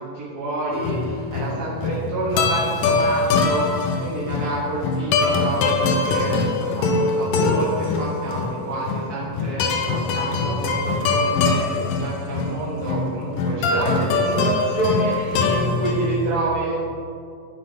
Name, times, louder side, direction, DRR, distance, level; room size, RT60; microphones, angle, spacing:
voice 1, 0.0-16.8, right 2 dB, 45° right, -8 dB, 1.3 m, -28 dB
sound 1, 0.7-16.3, left 4 dB, 80° left, 2.4 m, -23 dB
9.7 x 9.3 x 3.5 m, 2.3 s
omnidirectional pair, 3.9 m